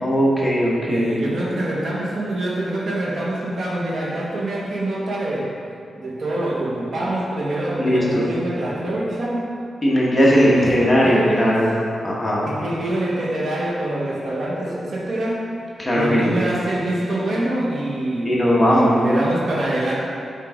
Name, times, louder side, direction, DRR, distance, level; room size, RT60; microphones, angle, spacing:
voice 1, 0.0-1.1 7.8-8.2 9.8-11.7 12.0-12.5 15.8-16.5 18.2-19.0, equal, 10° left, -6 dB, 1.2 m, -18 dB
voice 2, 0.8-5.5 5.9-9.6 10.1-11.7 12.4-15.5 15.9-19.9, right 1 dB, 55° right, -4 dB, 1.1 m, -25 dB
6.9 x 4.6 x 3.6 m, 2.4 s
wide cardioid pair, 140°, 0 cm